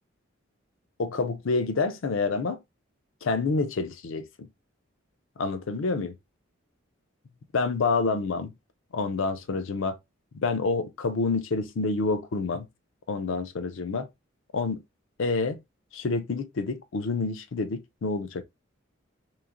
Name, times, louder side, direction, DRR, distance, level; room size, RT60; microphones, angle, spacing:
voice 1, 1.0-2.6 3.2-4.3 5.4-6.1 7.5-8.5 8.9-10.0 10.4-12.7 13.1-14.1 14.5-14.8 15.2-15.6 15.9-18.4, left 3 dB, 70° left, 0.5 m, -28 dB
3.1 x 2.9 x 2.4 m
head